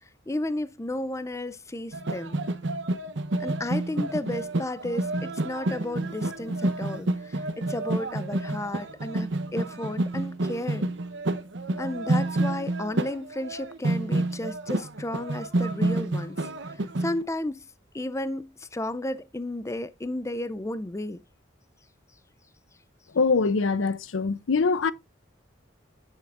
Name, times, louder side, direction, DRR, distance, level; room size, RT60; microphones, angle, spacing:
voice 1, 0.3-2.4 3.4-10.9 11.8-17.7 17.9-21.2, left 1 dB, 15° left, 0.5 m, -33 dB
sound 1, 1.9-17.2, right 2 dB, 65° right, 0.9 m, -29 dB
voice 2, 23.1-24.9, left 4 dB, 85° left, 0.6 m, -23 dB
10.0 x 7.3 x 2.5 m
head